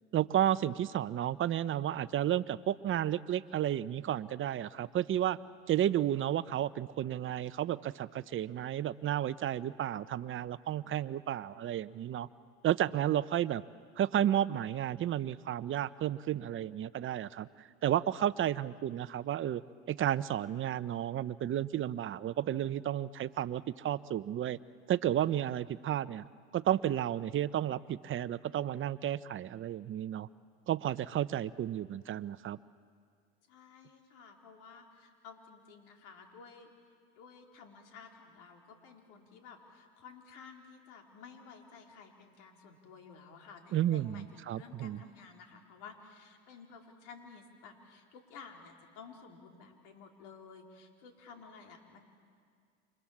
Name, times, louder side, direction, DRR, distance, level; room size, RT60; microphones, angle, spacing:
voice 1, 0.1-5.4 5.7-12.3 12.6-13.6 14.0-17.5 17.8-19.6 19.9-24.6 24.9-26.3 26.5-30.3 30.7-32.6 43.7-45.0, right 11 dB, 40° right, 16 dB, 0.8 m, -32 dB
voice 2, 33.5-36.7 37.2-52.0, left 5 dB, 70° left, 2 dB, 4.3 m, -53 dB
28.5 x 25.0 x 7.4 m, 2.1 s
hypercardioid pair, 85°, 32 cm